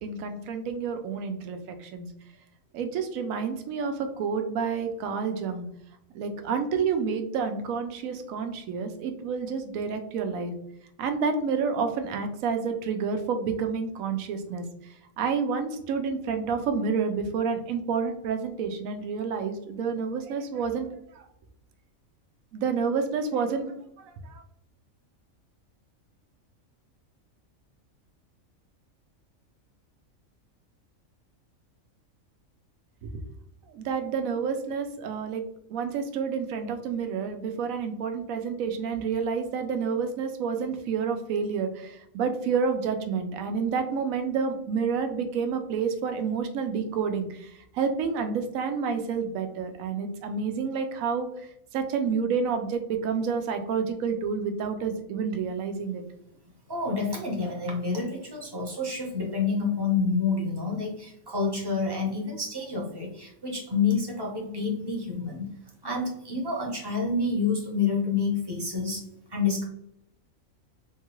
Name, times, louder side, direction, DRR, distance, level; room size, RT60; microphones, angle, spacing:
voice 1, 0.0-2.1 2.7-5.7 6.1-10.5 11.0-14.6 15.2-20.9 21.1-21.3 22.5-24.4 33.0-33.2 33.7-35.4 35.7-51.5 51.7-56.0, right 5 dB, 80° right, 7 dB, 1.0 m, -29 dB
voice 2, 56.7-65.5 65.8-69.0 69.3-69.6, left 4 dB, 25° right, -1 dB, 0.7 m, -28 dB
3.6 x 2.3 x 2.9 m, 0.74 s
omnidirectional pair, 1.4 m